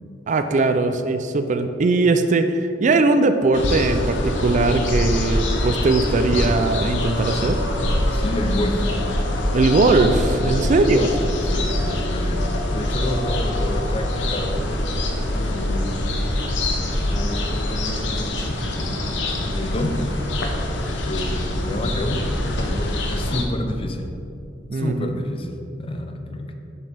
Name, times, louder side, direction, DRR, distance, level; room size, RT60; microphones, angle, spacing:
voice 1, 0.3-7.6 9.5-11.1 24.7-25.1, right 3 dB, 45° right, 8 dB, 0.4 m, -20 dB
sound 1, 3.5-23.4, left 1 dB, 90° left, 0.8 m, -24 dB
voice 2, 8.1-8.8 10.7-11.1 11.4-14.9 15.3-16.0 17.0-19.0 19.4-20.0 21.0-22.3 22.6-24.1 24.7-25.5 25.8-26.5, left 1 dB, 30° left, 5 dB, 0.6 m, -29 dB
7.7 x 6.7 x 3.4 m, 2.7 s
head